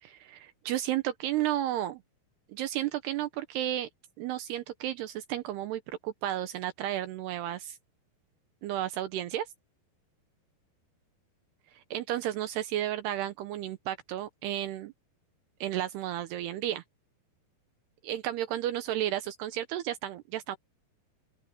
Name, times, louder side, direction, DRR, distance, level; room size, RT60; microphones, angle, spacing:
voice 1, 0.0-2.0 2.5-3.9 4.2-7.8 8.6-9.5 11.7-14.9 15.6-16.8 18.0-20.6, right 12 dB, 75° right, 2.9 m, -33 dB
open air
omnidirectional pair, 4.9 m